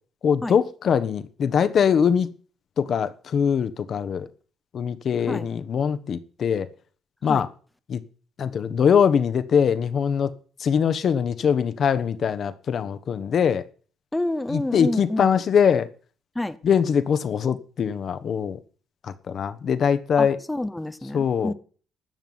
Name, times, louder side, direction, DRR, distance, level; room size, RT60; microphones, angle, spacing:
voice 1, 0.2-2.3 2.8-4.3 4.7-6.7 7.2-7.5 7.9-8.0 8.4-10.3 10.6-13.7 14.5-15.9 16.6-18.6 19.0-20.4 21.1-21.5, left 7 dB, 60° left, 1.2 m, -22 dB
voice 2, 14.1-15.3 16.4-16.6 20.2-21.5, left 1 dB, 10° left, 0.9 m, -28 dB
13.0 x 6.0 x 9.5 m
cardioid pair, 90°, 0 cm